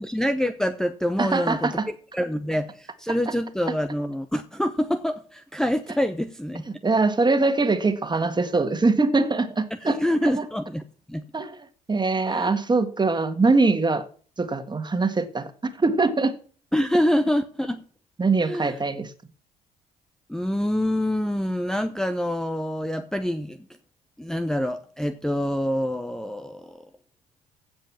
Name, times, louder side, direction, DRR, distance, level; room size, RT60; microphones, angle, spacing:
voice 1, 0.0-1.7 2.1-6.6 9.8-10.8 11.1-11.2 12.3-12.5 16.7-17.8 18.4-18.7 20.3-23.6 24.2-26.9, equal, 5° left, 0.9 m, -26 dB
voice 2, 1.2-1.9 6.7-10.4 11.3-14.1 14.4-15.5 15.8-16.4 18.2-19.1, right 3 dB, 25° right, 1.8 m, -23 dB
16.0 x 5.5 x 7.2 m
hypercardioid pair, 55°, 19 cm